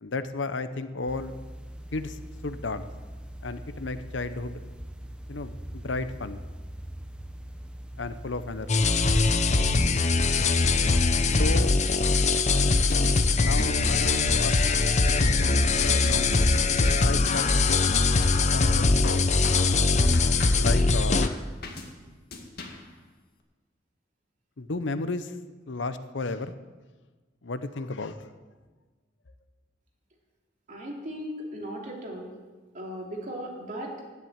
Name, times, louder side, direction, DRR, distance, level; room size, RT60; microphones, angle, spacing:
voice 1, 0.0-1.4 1.9-2.9 3.4-4.6 5.3-6.4 8.0-8.9 11.4-11.7 13.4-14.6 15.0-18.0 18.3-19.2 20.5-21.3 24.6-25.3 25.7-26.5 27.4-28.2, left 3 dB, 80° left, 12 dB, 0.8 m, -33 dB
sound 1, 1.1-11.4, equal, 5° right, 0.9 m, -42 dB
sound 2, 8.7-21.3, left 3 dB, 40° left, 0.7 m, -22 dB
sound 3, 12.5-13.2 13.6-14.1 14.7-15.4 15.8-16.3 16.9-17.0 17.3-17.6 17.9-18.5 19.0-19.8 20.1-20.7 21.2-21.9 22.3-22.9, left 3 dB, 60° left, 2.0 m, -40 dB
voice 2, 30.7-32.3 32.7-34.1, equal, 45° right, -1 dB, 3.1 m, -37 dB
10.5 x 10.5 x 8.7 m, 1.3 s
head